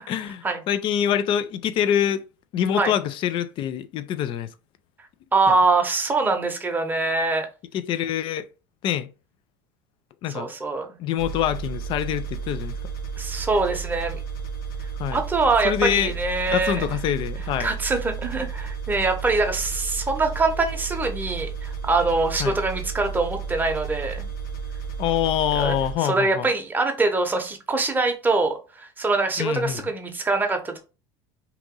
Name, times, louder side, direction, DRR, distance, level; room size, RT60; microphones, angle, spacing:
voice 1, 0.1-2.2 2.5-4.5 5.5-5.6 7.7-8.5 8.8-9.1 10.2-10.5 11.0-12.8 15.0-15.2 15.6-16.1 16.5-17.7 22.4-22.6 25.0-26.5 29.4-29.8, left 10 dB, 45° left, 0.4 m, -25 dB
voice 2, 5.3-7.5 10.3-10.9 13.2-14.2 15.1-17.0 17.6-24.3 25.5-30.8, right 3 dB, 15° right, 0.8 m, -24 dB
sound 1, 11.2-25.9, right 6 dB, 75° left, 0.9 m, -33 dB
2.9 x 2.6 x 3.7 m
supercardioid pair, 100°, 12 cm